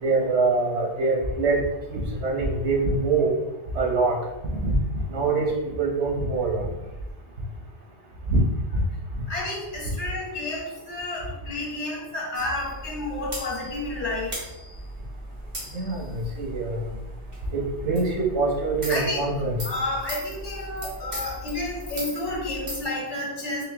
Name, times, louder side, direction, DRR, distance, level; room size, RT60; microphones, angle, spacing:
voice 1, 0.0-1.6 1.9-3.3 3.7-4.2 4.6-4.7 5.1-5.5 5.8-6.7 8.3-8.4 15.7-16.8 17.5-19.5, right 3 dB, 75° right, -1 dB, 1.3 m, -24 dB
voice 2, 9.3-14.4 18.9-19.2 19.6-23.6, left 2 dB, 75° left, -3 dB, 1.5 m, -31 dB
sound 1, 12.3-22.8, right 1 dB, 40° right, 1.4 m, -38 dB
3.8 x 3.0 x 3.4 m, 1.0 s
omnidirectional pair, 1.2 m